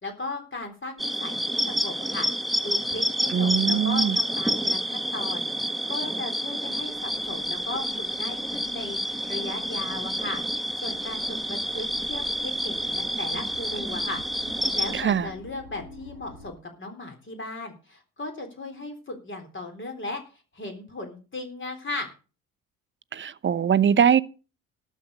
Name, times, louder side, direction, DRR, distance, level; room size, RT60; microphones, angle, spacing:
voice 1, 0.0-1.4 1.6-10.4 10.8-14.2 14.7-20.2 20.5-22.1, left 2 dB, 30° left, 3.6 m, -37 dB
sound 1, 1.0-15.0, equal, ahead, 1.4 m, -29 dB
voice 2, 3.3-4.2 14.9-15.3 23.1-24.2, right 8 dB, 30° right, 0.8 m, -22 dB
sound 2, 6.7-16.5, left 2 dB, 70° left, 4.3 m, -49 dB
12.5 x 7.5 x 6.7 m
hypercardioid pair, 50°, 39 cm